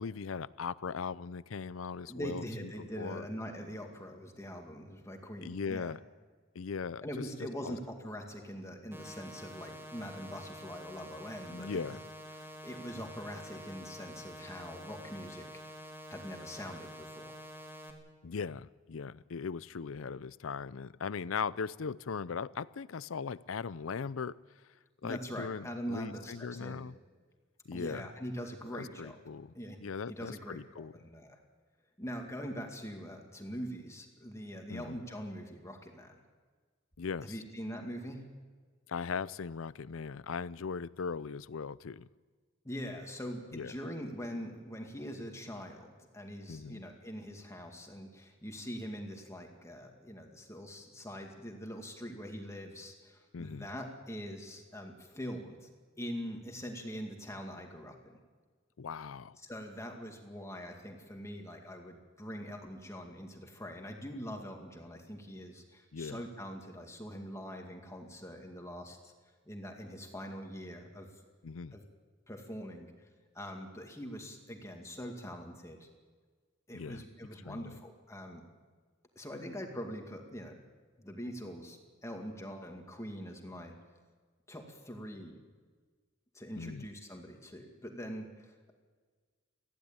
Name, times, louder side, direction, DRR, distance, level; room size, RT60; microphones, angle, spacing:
voice 1, 0.0-2.7 3.0-3.2 5.4-6.0 6.5-7.2 7.6-7.7 11.5-12.0 18.2-24.4 25.0-26.9 27.7-28.1 28.7-29.5 29.8-30.9 34.7-35.0 37.0-37.3 38.9-42.1 43.5-43.7 46.5-46.8 53.3-53.7 58.8-59.4 65.9-66.2 71.4-71.7 76.7-77.0 77.4-77.7 86.6-86.9, left 5 dB, 85° left, 19 dB, 0.5 m, -39 dB
voice 2, 2.1-5.9 7.0-12.0 12.3-15.8 16.1-17.4 25.0-26.9 27.7-29.2 29.5-29.8 30.1-31.4 32.0-36.2 37.2-38.2 42.6-55.7 56.0-58.2 59.4-69.1 69.5-71.1 71.7-71.8 72.3-72.9 73.3-75.9 76.7-78.4 79.2-80.5 81.0-83.7 84.5-85.4 86.3-88.7, equal, 15° left, 2 dB, 2.2 m, -43 dB
sound 1, 8.9-17.9, equal, 10° right, 2.4 m, -48 dB
20.0 x 15.0 x 8.9 m, 1.5 s
head